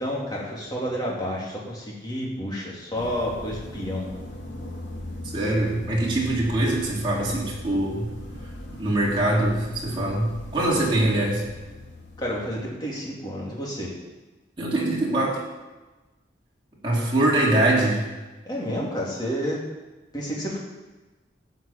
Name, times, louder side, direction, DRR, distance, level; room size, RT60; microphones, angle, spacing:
voice 1, 0.0-4.1 12.2-13.9 18.5-19.6 20.1-20.6, equal, 20° left, -4 dB, 3.2 m, -30 dB
sound 1, 2.9-12.6, left 1 dB, 70° left, 2.5 m, -39 dB
voice 2, 5.3-8.1 8.7-11.4 14.6-15.4 16.8-18.0, right 1 dB, 25° right, -5 dB, 3.2 m, -23 dB
13.5 x 6.1 x 9.0 m, 1.2 s
head